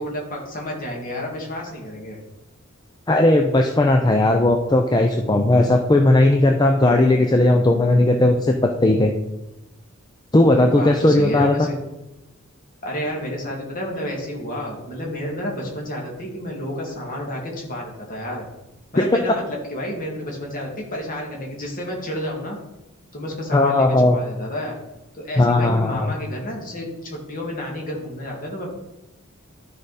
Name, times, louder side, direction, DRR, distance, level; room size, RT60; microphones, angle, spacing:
voice 1, 0.0-2.2 10.7-11.8 12.8-18.5 18.9-22.6 23.1-24.8 25.1-28.7, equal, 40° left, -1 dB, 2.2 m, -30 dB
voice 2, 3.1-9.1 10.3-11.5 23.5-24.2 25.4-26.1, left 2 dB, 20° left, 4 dB, 0.5 m, -17 dB
12.0 x 5.1 x 4.1 m, 0.96 s
head